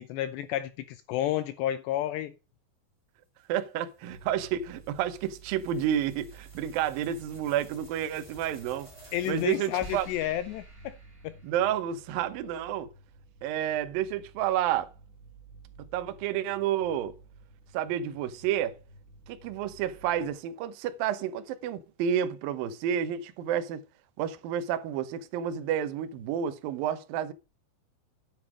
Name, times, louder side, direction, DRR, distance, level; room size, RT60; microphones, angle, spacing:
voice 1, 0.0-2.3 9.1-11.0 11.2-11.4, left 12 dB, 80° left, 2.5 m, -31 dB
sound 1, 3.4-12.0, equal, 15° right, 0.9 m, -52 dB
voice 2, 3.5-8.9 9.3-10.1 11.4-12.9 13.4-14.9 15.9-17.1 17.7-18.8 19.3-23.8 24.2-27.3, right 10 dB, 85° right, 2.0 m, -30 dB
sound 2, 4.1-20.4, right 3 dB, 20° left, 2.8 m, -53 dB
9.4 x 8.5 x 4.9 m
omnidirectional pair, 5.5 m